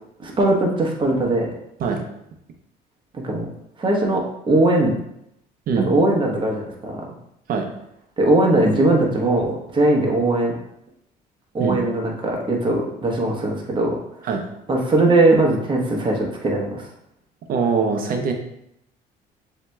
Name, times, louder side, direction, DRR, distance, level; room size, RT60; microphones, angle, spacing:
voice 1, 0.2-1.5 3.1-3.4 3.8-4.9 5.8-7.0 8.2-10.5 11.5-13.9 14.7-16.8, right 2 dB, 30° right, 0 dB, 1.0 m, -20 dB
voice 2, 17.5-18.3, right 5 dB, 60° right, 4 dB, 0.8 m, -22 dB
7.2 x 2.9 x 2.3 m, 0.79 s
cardioid pair, 110°, 17 cm